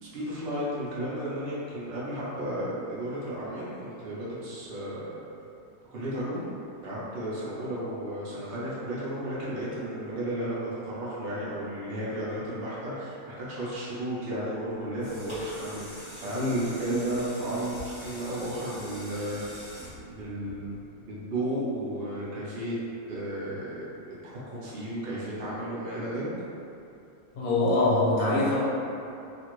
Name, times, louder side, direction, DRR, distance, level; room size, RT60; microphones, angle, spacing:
voice 1, 0.0-5.2 5.9-6.4 6.8-19.8 20.1-22.8 23.1-23.9 24.2-26.3, right 1 dB, 65° right, -8 dB, 0.5 m, -33 dB
sound 1, 15.0-21.0 21.5-21.6, equal, 20° left, 0.9 m, -42 dB
voice 2, 27.3-28.6, left 2 dB, 60° left, -7 dB, 1.1 m, -23 dB
2.9 x 2.6 x 3.0 m, 2.7 s
omnidirectional pair, 2.0 m